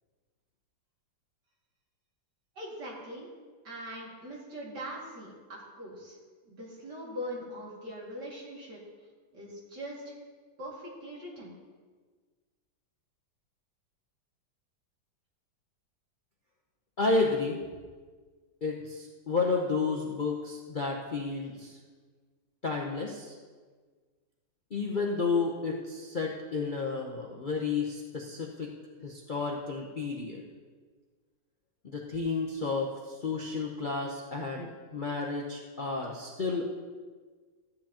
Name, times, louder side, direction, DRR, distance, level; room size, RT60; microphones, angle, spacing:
voice 1, 2.6-3.3 3.6-6.2 6.4-8.8 9.3-10.1 10.6-11.5, equal, 70° right, -4 dB, 3.0 m, -41 dB
voice 2, 17.0-17.6 18.6-21.8 22.6-23.3 24.7-28.7 29.0-30.4 31.8-36.8, left 4 dB, 40° left, -2 dB, 0.7 m, -31 dB
14.5 x 9.9 x 2.9 m, 1.5 s
omnidirectional pair, 2.0 m